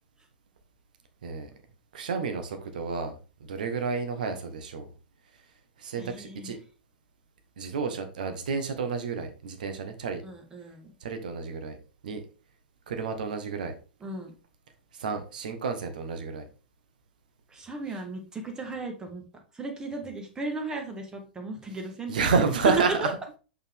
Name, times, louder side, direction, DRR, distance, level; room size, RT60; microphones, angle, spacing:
voice 1, 1.9-3.2 3.5-4.9 5.8-6.6 7.6-10.2 11.0-11.8 12.0-12.2 12.9-13.7 14.9-16.5 22.1-23.1, right 5 dB, 60° right, 7 dB, 1.3 m, -30 dB
voice 2, 6.0-6.5 10.2-10.9 14.0-14.3 17.5-19.2 19.5-22.2 22.5-23.1, right 3 dB, 15° right, 3 dB, 1.7 m, -34 dB
6.7 x 5.5 x 3.5 m, 0.34 s
figure-of-eight pair, 100°, 5 cm